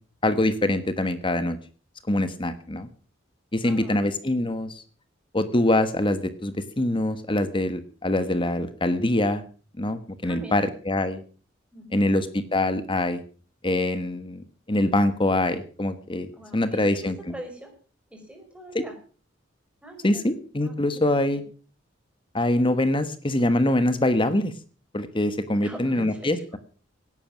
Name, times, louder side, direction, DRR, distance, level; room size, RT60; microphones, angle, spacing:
voice 1, 0.2-1.6 2.1-2.9 3.5-4.8 5.3-9.4 9.8-11.2 11.9-13.2 13.6-16.3 16.5-17.2 18.7-18.8 20.0-21.4 22.3-24.5 24.9-26.6, left 1 dB, 25° left, 12 dB, 1.2 m, -24 dB
voice 2, 3.6-4.1 10.2-10.7 11.7-11.9 16.4-17.7 18.1-18.9 19.8-20.3 20.6-21.3 25.6-26.4, right 1 dB, 5° right, 3 dB, 5.0 m, -42 dB
18.0 x 11.0 x 6.1 m, 0.39 s
head